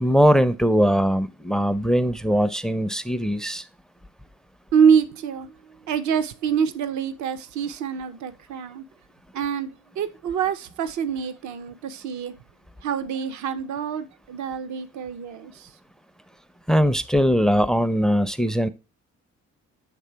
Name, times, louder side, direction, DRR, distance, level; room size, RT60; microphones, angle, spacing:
voice 1, 0.0-3.6 16.7-18.7, equal, ahead, 0.4 m, -20 dB
voice 2, 4.7-5.5 5.9-8.8 9.3-12.3 12.8-15.7, right 7 dB, 70° right, 0.7 m, -25 dB
7.6 x 3.3 x 4.4 m
cardioid pair, 90°, 30 cm